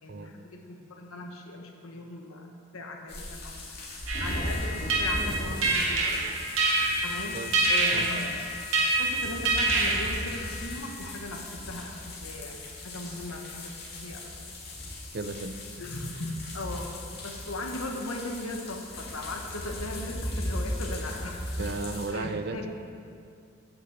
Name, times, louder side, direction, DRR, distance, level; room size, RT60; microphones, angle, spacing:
voice 1, 0.0-2.5 2.7-3.6 4.2-6.3 7.0-7.4 7.7-8.4 9.0-11.9 12.2-13.6 13.9-14.4 15.8-21.7 22.1-22.7, left 2 dB, 75° left, 2 dB, 1.3 m, -38 dB
sound 1, 3.1-22.1, left 1 dB, 45° left, 2.1 m, -37 dB
sound 2, 4.1-10.7, right 2 dB, 65° right, 1.9 m, -27 dB
voice 2, 15.1-15.6 21.6-22.7, right 3 dB, 45° right, 9 dB, 0.5 m, -34 dB
9.6 x 6.2 x 7.9 m, 2.3 s
head